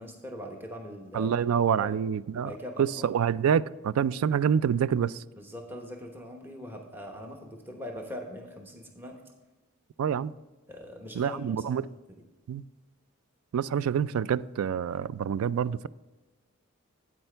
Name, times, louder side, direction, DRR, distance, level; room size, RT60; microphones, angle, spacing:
voice 1, 0.0-1.3 1.6-2.0 2.4-3.1 5.4-9.2 10.7-11.8, left 1 dB, 10° right, 1.0 m, -41 dB
voice 2, 1.1-2.5 2.8-5.2 10.0-10.3 11.2-11.9 12.5-12.6 13.5-15.9, right 8 dB, 75° right, 0.3 m, -27 dB
8.8 x 8.7 x 3.4 m
head